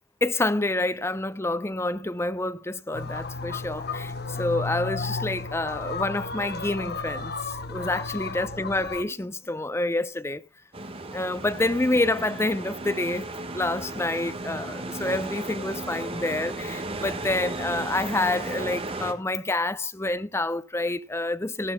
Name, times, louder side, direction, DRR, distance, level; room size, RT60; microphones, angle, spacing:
voice 1, 0.2-10.4 11.1-21.7, left 2 dB, 15° left, 0.6 m, -28 dB
sound 1, 2.9-9.0, left 4 dB, 55° left, 1.1 m, -33 dB
sound 2, 10.7-19.1, right 2 dB, 30° right, 1.4 m, -35 dB
17.5 x 12.5 x 2.2 m
head